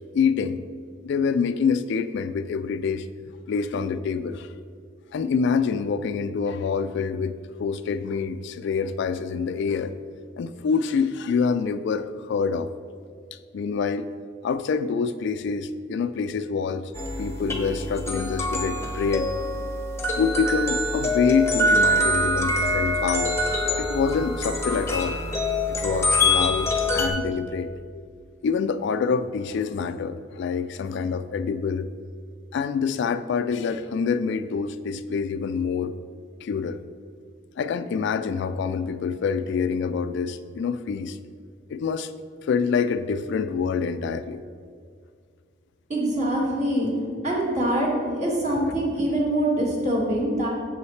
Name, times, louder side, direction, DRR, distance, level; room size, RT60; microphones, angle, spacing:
voice 1, 0.1-0.6 1.0-3.1 3.5-4.5 5.1-7.3 7.6-9.9 10.4-12.7 13.5-14.1 14.4-16.9 17.2-19.3 20.2-23.4 23.8-25.2 25.7-28.0 28.4-31.9 32.5-35.9 36.4-36.8 37.6-41.2 41.7-42.1 42.4-44.4, left 5 dB, 65° left, 11 dB, 0.3 m, -26 dB
sound 1, 16.9-27.1, left 1 dB, 15° left, 0.8 m, -25 dB
voice 2, 45.9-46.9 47.2-47.9 48.2-50.5, right 1 dB, 40° right, -4 dB, 1.9 m, -24 dB
8.5 x 7.0 x 3.2 m, 2.1 s
head